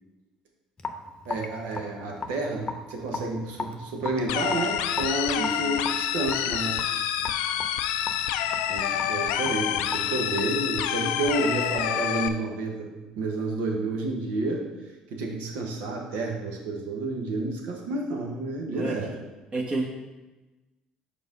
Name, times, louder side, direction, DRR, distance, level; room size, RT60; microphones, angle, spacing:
Raindrop / Drip, 0.8-11.3, left 4 dB, 30° left, 0.8 m, -38 dB
voice 1, 1.2-6.8 8.7-14.6 15.1-19.1, right 2 dB, 75° right, 1 dB, 1.2 m, -30 dB
sound 1, 4.3-12.3, left 10 dB, 75° left, 0.4 m, -28 dB
voice 2, 19.5-19.8, right 3 dB, 35° right, -2 dB, 1.3 m, -29 dB
5.3 x 4.3 x 5.2 m, 1.1 s
hypercardioid pair, 60°, 3 cm